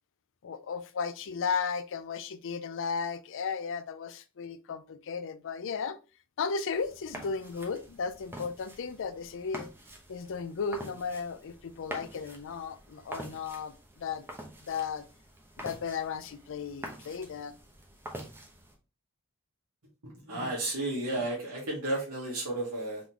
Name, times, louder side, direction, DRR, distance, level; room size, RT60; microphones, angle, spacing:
voice 1, 0.4-6.0 6.4-9.7 10.1-14.2 14.6-15.0 15.6-17.5, left 5 dB, 60° left, 0.4 m, -35 dB
sound 1, 6.7-18.7, right 1 dB, 10° right, 0.8 m, -46 dB
voice 2, 20.3-23.0, right 2 dB, 90° right, 1.5 m, -32 dB
3.7 x 3.7 x 2.9 m
head